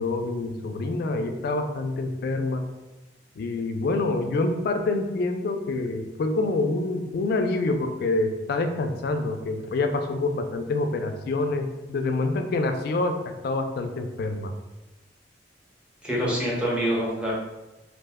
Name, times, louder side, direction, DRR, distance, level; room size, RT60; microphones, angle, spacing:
voice 1, 0.0-2.6 3.4-14.5, left 2 dB, 55° left, 6 dB, 0.3 m, -26 dB
voice 2, 16.0-17.3, equal, 5° right, -6 dB, 0.7 m, -25 dB
2.5 x 2.1 x 3.4 m, 1.1 s
head